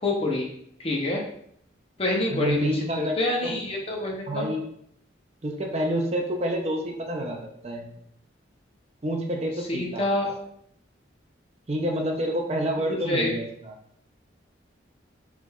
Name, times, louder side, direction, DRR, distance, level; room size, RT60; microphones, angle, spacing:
voice 1, 0.0-0.5 0.8-1.2 2.0-2.6 3.0-4.5 9.7-10.3 12.9-13.3, left 2 dB, 30° left, -1 dB, 0.7 m, -26 dB
voice 2, 2.3-3.5 4.3-4.6 5.4-7.9 9.0-10.1 11.7-13.7, equal, 30° right, 1 dB, 0.5 m, -28 dB
4.9 x 3.3 x 2.3 m, 0.68 s
head